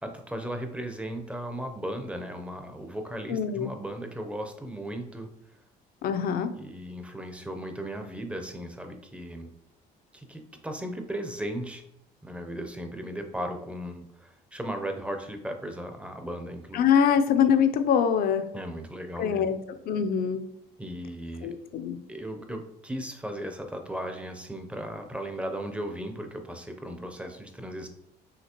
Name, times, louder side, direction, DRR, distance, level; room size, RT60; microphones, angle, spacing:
voice 1, 0.0-5.3 6.6-9.5 10.1-11.8 12.2-16.8 18.5-19.5 20.8-21.5 22.1-27.9, right 1 dB, 5° right, 5 dB, 0.6 m, -36 dB
voice 2, 3.3-3.7 6.0-6.5 16.7-18.4 19.2-19.5 19.9-20.4 21.4-22.0, left 7 dB, 60° left, 9 dB, 0.5 m, -23 dB
5.7 x 2.9 x 2.9 m, 0.73 s
cardioid pair, 110°, 17 cm